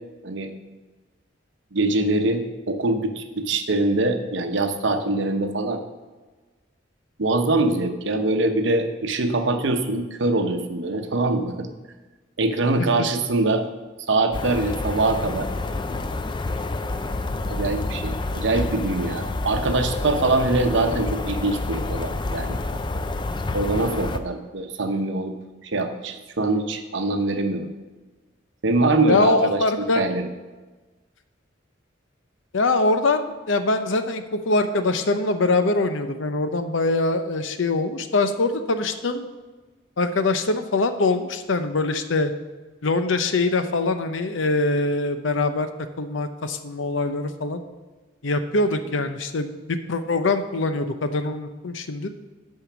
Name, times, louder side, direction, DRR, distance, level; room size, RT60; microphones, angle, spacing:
voice 1, 1.7-5.8 7.2-11.7 12.4-13.6 14.1-15.5 17.5-22.6 23.5-25.3 25.6-27.7 28.6-29.6 30.0-30.3, right 2 dB, 70° right, 6 dB, 0.8 m, -23 dB
sound 1, 14.3-24.2, left 2 dB, 25° left, 0.4 m, -28 dB
voice 2, 29.1-30.0 32.5-39.3 40.0-42.3 42.8-45.7 46.0-47.6 48.2-52.1, left 3 dB, 75° left, 9 dB, 0.7 m, -23 dB
8.9 x 5.6 x 6.0 m, 1.3 s
head